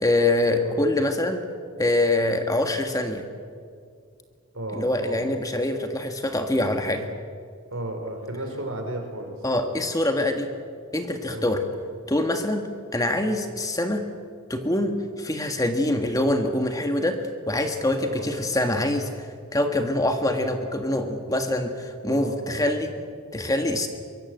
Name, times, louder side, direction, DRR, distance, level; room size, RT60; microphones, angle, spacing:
voice 1, 0.0-1.5 1.8-3.2 4.7-7.0 9.4-10.5 10.9-11.6 12.1-12.6 12.9-14.0 14.5-17.2 17.5-22.9 23.3-23.9, left 1 dB, 15° left, 5 dB, 1.6 m, -24 dB
voice 2, 4.5-5.3 6.9-7.0 7.7-9.4 11.3-11.5 18.0-18.3 20.2-20.4 22.1-22.8, right 1 dB, 70° right, 4 dB, 4.8 m, -34 dB
24.0 x 22.5 x 7.9 m, 2.2 s
head